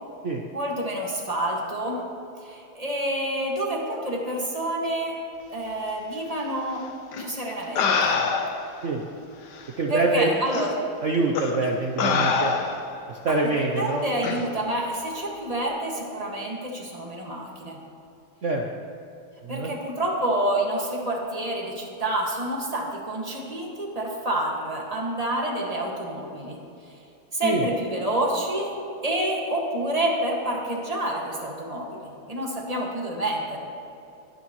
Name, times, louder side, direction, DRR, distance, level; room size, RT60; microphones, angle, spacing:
voice 1, 0.5-2.0 2.4-5.2 5.5-6.8 7.2-8.2 9.9-10.7 13.3-17.8 19.5-26.6 27.3-28.7 29.0-33.6, right 1 dB, 20° right, -2 dB, 1.7 m, -28 dB
sound 1, 7.1-7.2 7.8-8.7 9.6-9.7 10.5-10.7 11.3-11.6 12.0-12.9 14.2-14.4, left 5 dB, 60° left, 1.4 m, -24 dB
voice 2, 9.8-10.3 11.0-12.5 13.1-14.1 18.4-18.7 19.4-19.7 27.4-27.6, right 3 dB, 85° right, 1 dB, 0.6 m, -25 dB
20.5 x 9.9 x 3.1 m, 2.7 s
omnidirectional pair, 2.3 m